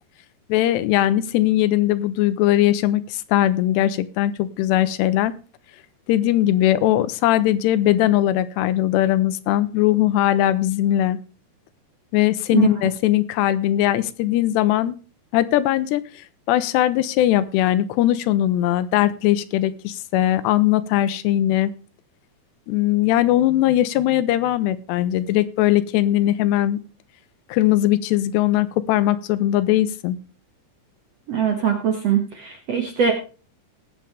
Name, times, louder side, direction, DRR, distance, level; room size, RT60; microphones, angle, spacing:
voice 1, 0.5-5.3 6.1-11.2 12.1-15.0 15.3-16.0 16.5-21.7 22.7-26.8 27.5-30.2, left 13 dB, 90° left, 14 dB, 2.9 m, -20 dB
voice 2, 31.3-33.1, right 7 dB, 60° right, 3 dB, 1.7 m, -22 dB
18.5 x 7.9 x 3.4 m, 0.35 s
omnidirectional pair, 4.8 m